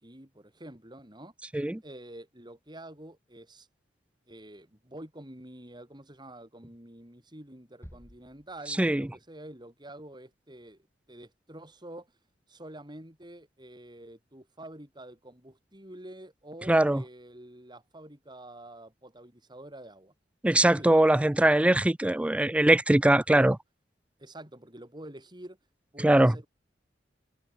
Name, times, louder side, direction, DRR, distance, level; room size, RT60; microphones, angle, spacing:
voice 1, 0.0-1.3 1.8-3.7 4.3-10.8 11.1-12.1 12.5-20.1 20.7-20.9 21.6-21.8 23.1-23.5 24.2-25.6 25.9-26.5, right 1 dB, 25° right, 6.5 m, -47 dB
sound 1, 7.8-9.2, equal, 15° left, 5.3 m, -52 dB
voice 2, 16.7-17.0 20.4-23.6 26.0-26.3, right 1 dB, 5° right, 0.3 m, -21 dB
head